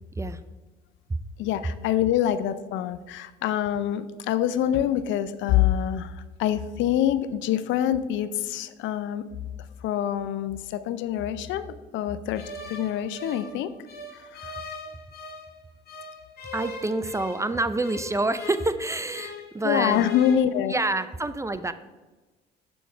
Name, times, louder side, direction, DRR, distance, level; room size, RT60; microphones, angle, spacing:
voice 1, 1.4-9.2 9.8-11.7 11.9-13.7 14.1-14.5 19.6-20.7, left 10 dB, 75° left, 13 dB, 0.5 m, -25 dB
sound 1, 12.3-15.5 15.9-19.5 19.8-20.3, left 3 dB, 50° left, 2.0 m, -40 dB
voice 2, 16.5-20.1 20.7-21.7, right 2 dB, 15° right, 12 dB, 0.5 m, -27 dB
7.0 x 6.2 x 4.5 m, 1.2 s
supercardioid pair, 60°, 20 cm